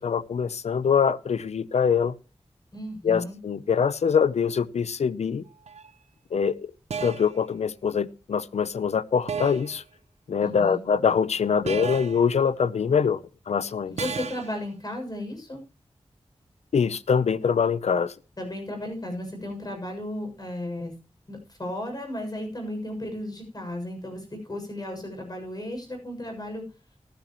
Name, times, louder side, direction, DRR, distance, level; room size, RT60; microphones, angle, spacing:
voice 1, 0.0-2.1 3.0-5.4 6.3-6.7 7.0-9.8 10.3-13.2 13.5-13.9 16.7-18.1, left 6 dB, 90° left, 17 dB, 0.6 m, -24 dB
voice 2, 2.7-3.4 10.4-10.8 13.9-15.6 18.4-20.9 21.3-26.6, left 1 dB, 35° left, 3 dB, 6.8 m, -34 dB
sound 1, 5.7-5.9 6.9-7.4 9.3-9.8 11.7-12.3 14.0-14.6, right 6 dB, 85° right, 0.7 m, -33 dB
14.5 x 12.5 x 3.1 m, 0.31 s
wide cardioid pair, 60°, 11 cm